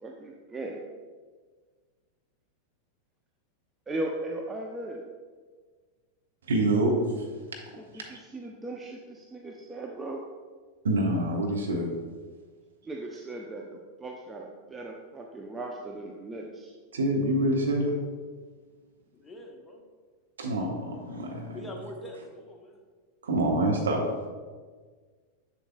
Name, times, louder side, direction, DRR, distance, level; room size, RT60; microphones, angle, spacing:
voice 1, 0.0-0.8 3.9-5.0 8.3-10.2 12.9-13.6 14.0-16.7, right 2 dB, 15° right, 0 dB, 0.6 m, -37 dB
voice 2, 6.5-6.9 7.9-8.1 10.8-11.9 16.9-17.9 20.4-21.6 23.2-24.2, right 1 dB, 65° right, 1 dB, 1.1 m, -26 dB
voice 3, 19.1-19.8 21.5-22.8, left 1 dB, 15° left, 1 dB, 1.0 m, -43 dB
7.2 x 7.0 x 2.2 m, 1.5 s
figure-of-eight pair, 90°, 0 cm